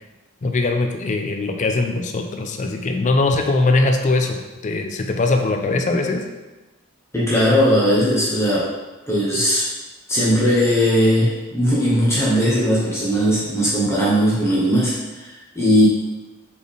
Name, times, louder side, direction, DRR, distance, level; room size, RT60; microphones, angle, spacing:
voice 1, 0.4-4.4 4.6-6.2, left 2 dB, 35° left, 4 dB, 0.4 m, -21 dB
voice 2, 7.1-8.7 9.1-9.7 10.1-15.9, equal, 15° left, -7 dB, 0.7 m, -18 dB
4.2 x 3.2 x 3.5 m, 1.1 s
head